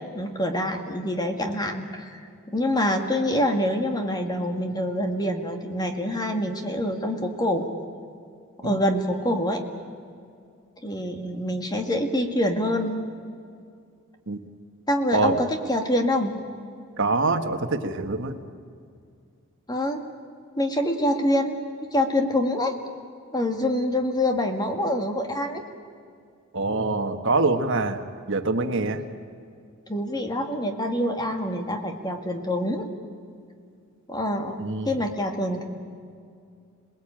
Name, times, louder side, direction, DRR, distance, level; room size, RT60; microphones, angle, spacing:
voice 1, 0.1-7.7 8.6-9.6 10.8-13.0 14.9-16.3 19.7-20.0 20.6-21.6 21.9-22.7 23.3-25.6 29.9-32.9 34.1-34.6 34.9-35.7, left 1 dB, 20° left, 4 dB, 2.0 m, -25 dB
voice 2, 17.0-18.4 26.5-28.0 28.3-29.1 34.6-34.9, right 3 dB, 60° right, 7 dB, 1.5 m, -24 dB
28.0 x 19.5 x 8.9 m, 2.3 s
head